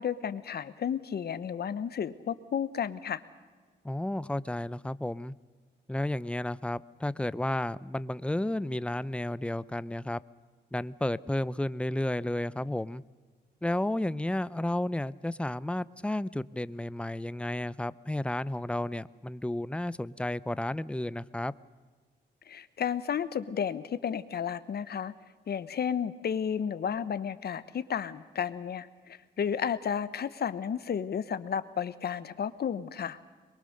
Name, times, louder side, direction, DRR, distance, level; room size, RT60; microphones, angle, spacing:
voice 1, 0.0-3.2 22.5-25.1 25.5-33.2, left 8 dB, 60° left, 13 dB, 1.1 m, -32 dB
voice 2, 3.8-5.3 5.9-10.2 10.7-13.0 13.6-21.5, left 1 dB, 5° left, 17 dB, 0.6 m, -32 dB
23.0 x 22.5 x 6.6 m, 1.4 s
cardioid pair, 80°, 19 cm